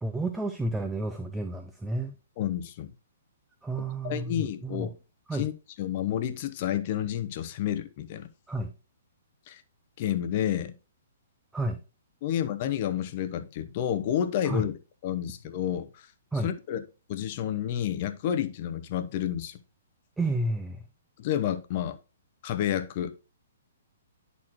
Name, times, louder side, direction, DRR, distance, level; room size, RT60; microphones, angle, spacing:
voice 1, 0.0-2.1 3.6-4.9 5.3-5.5 8.5-8.7 11.5-11.8 14.4-14.7 16.3-16.5 20.2-20.8, right 2 dB, 5° right, 0.5 m, -31 dB
voice 2, 2.4-2.9 4.0-4.9 5.3-5.5 5.8-8.3 9.5-9.6 10.0-10.7 12.2-14.8 15.0-16.1 16.4-16.8 17.1-19.6 21.2-22.0 22.4-23.1, left 10 dB, 45° left, 0.7 m, -30 dB
10.5 x 4.1 x 3.0 m
hypercardioid pair, 130°, 0 cm